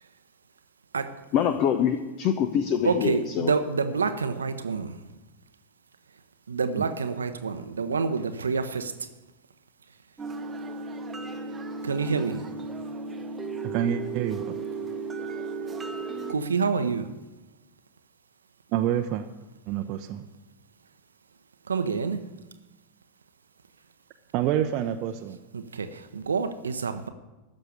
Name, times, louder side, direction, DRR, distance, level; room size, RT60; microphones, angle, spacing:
voice 1, 1.3-3.5, left 8 dB, 40° left, 10 dB, 0.8 m, -25 dB
voice 2, 2.8-4.9 6.5-8.9 11.8-12.4 16.3-17.2 21.7-22.3 25.5-27.1, right 5 dB, 70° right, 9 dB, 0.7 m, -27 dB
sound 1, 10.2-16.4, right 4 dB, 15° right, 1.1 m, -35 dB
voice 3, 13.7-14.5 18.7-19.3 19.7-20.2 24.3-25.4, right 10 dB, 40° right, 5 dB, 0.7 m, -27 dB
14.0 x 6.6 x 9.6 m, 1.1 s
figure-of-eight pair, 90°, 0 cm